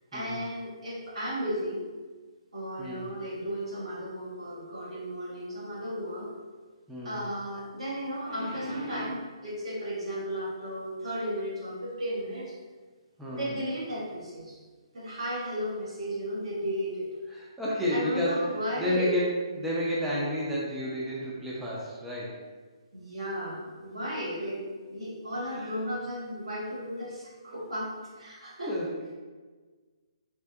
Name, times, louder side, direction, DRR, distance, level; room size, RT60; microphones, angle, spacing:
voice 1, 0.1-1.8 2.5-6.3 7.0-12.5 13.4-14.6 14.9-17.1 17.9-19.1 22.9-28.7, equal, 85° right, -7 dB, 1.4 m, -34 dB
voice 2, 6.9-7.2 13.2-13.5 17.3-18.4 18.8-22.4 25.5-25.7 28.7-28.9, equal, 5° right, -7 dB, 0.4 m, -31 dB
3.6 x 2.6 x 2.3 m, 1.4 s
hypercardioid pair, 155°, 3 cm